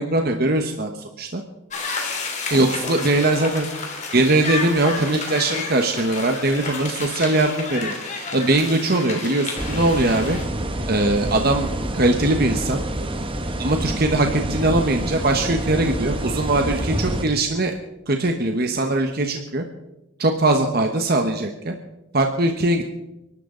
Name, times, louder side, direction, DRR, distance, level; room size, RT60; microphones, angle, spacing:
voice 1, 0.0-1.4 2.5-3.7 4.1-10.4 10.9-12.8 13.6-17.7 18.1-19.6 20.2-21.8 22.1-22.8, right 2 dB, 50° right, 4 dB, 1.2 m, -21 dB
sound 1, 1.7-10.4, left 4 dB, 35° left, 2.9 m, -31 dB
sound 2, 9.6-17.2, right 1 dB, 25° right, 1.2 m, -27 dB
30.0 x 12.0 x 3.9 m, 0.94 s
head